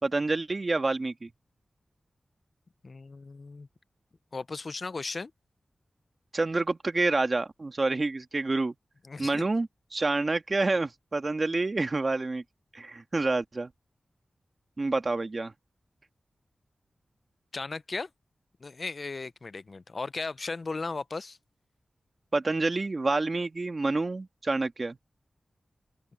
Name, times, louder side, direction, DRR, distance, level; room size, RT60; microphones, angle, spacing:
voice 1, 0.0-1.3 6.3-8.7 9.2-12.4 12.7-13.7 14.8-15.5 22.3-25.0, right 3 dB, 45° right, 1.7 m, -28 dB
voice 2, 2.8-3.7 4.3-5.3 9.0-9.4 17.5-18.1 18.6-21.4, left 3 dB, 55° left, 0.6 m, -36 dB
open air
cardioid pair, 55°, 0 cm